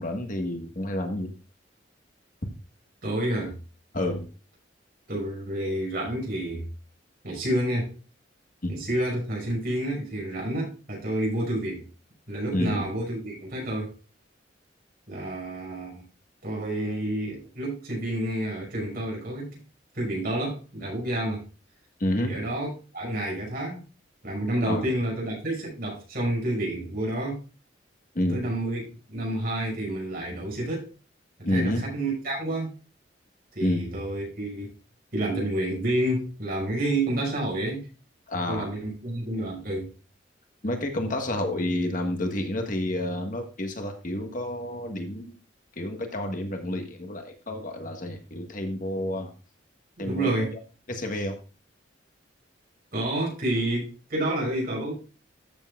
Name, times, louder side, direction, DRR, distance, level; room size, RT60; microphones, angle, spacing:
voice 1, 0.0-1.4 3.9-4.3 8.6-8.8 12.5-12.8 22.0-22.4 24.6-24.8 28.1-28.4 31.4-31.8 33.6-33.8 38.3-38.7 40.6-45.4 45.7-49.3 50.0-50.3 50.9-51.4, left 1 dB, 45° left, 4 dB, 1.5 m, -29 dB
voice 2, 3.0-3.5 5.1-6.6 7.2-8.0 8.7-11.9 12.3-13.9 15.1-16.0 16.4-19.6 19.9-21.4 22.2-23.8 24.2-27.4 28.3-28.8 29.1-30.9 31.4-32.7 33.6-34.7 35.1-37.9 38.5-39.9 50.0-50.5 52.9-54.9, right 1 dB, 50° right, -2 dB, 6.0 m, -29 dB
13.5 x 7.3 x 2.4 m, 0.34 s
head